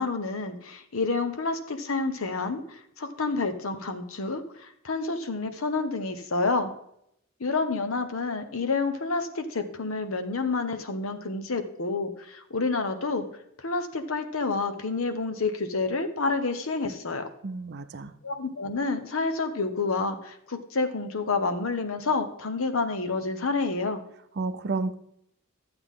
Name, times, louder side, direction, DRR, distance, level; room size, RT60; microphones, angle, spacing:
voice 1, 0.0-6.7 7.4-13.3 13.6-17.3 18.2-24.0, left 3 dB, 80° left, 8 dB, 1.0 m, -29 dB
voice 2, 17.4-18.1 24.4-25.0, right 3 dB, 55° right, 11 dB, 0.6 m, -31 dB
12.0 x 7.9 x 3.7 m, 0.75 s
head